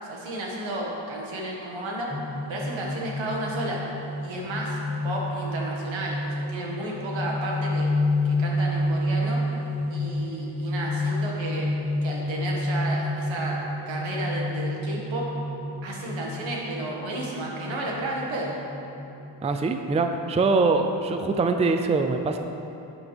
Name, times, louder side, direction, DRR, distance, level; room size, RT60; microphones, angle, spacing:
voice 1, 0.0-2.1 2.5-3.8 4.2-4.8 5.0-7.9 8.2-9.4 9.9-11.7 12.0-13.6 13.9-15.3 15.8-18.5, right 1 dB, 80° right, -2 dB, 2.0 m, -32 dB
sound 1, 2.1-21.3, left 1 dB, 5° left, 1.1 m, -30 dB
voice 2, 19.4-22.4, right 3 dB, 15° right, 6 dB, 0.4 m, -23 dB
10.5 x 8.4 x 3.5 m, 2.8 s
cardioid pair, 95°, 45 cm